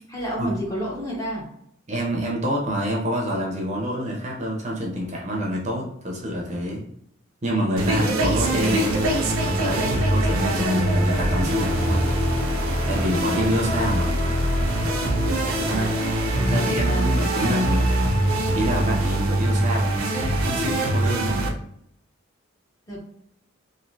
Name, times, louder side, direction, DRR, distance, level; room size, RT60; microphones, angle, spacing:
voice 1, 0.1-1.5 15.5-16.0 16.4-17.1 22.9-23.0, equal, 15° left, -3 dB, 0.7 m, -30 dB
voice 2, 1.9-6.8 7.4-9.0 9.6-12.1 12.6-14.2 15.6-15.9 16.4-17.9 18.6-21.5, equal, 35° right, -2 dB, 0.6 m, -27 dB
sound 1, 7.8-21.5, right 1 dB, 90° right, 0.5 m, -23 dB
sound 2, 8.4-19.3, left 1 dB, 90° left, 0.9 m, -35 dB
3.1 x 2.5 x 2.6 m, 0.71 s
head